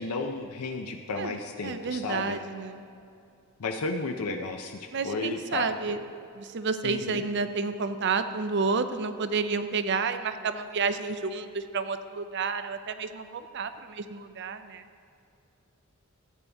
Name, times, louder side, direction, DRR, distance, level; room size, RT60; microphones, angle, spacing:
voice 1, 0.0-2.3 3.6-6.0 6.8-7.2, left 3 dB, 80° left, 4 dB, 0.6 m, -33 dB
voice 2, 1.6-2.8 4.9-6.0 6.4-14.8, right 4 dB, 50° right, 10 dB, 0.5 m, -30 dB
14.0 x 8.5 x 3.4 m, 2.6 s
head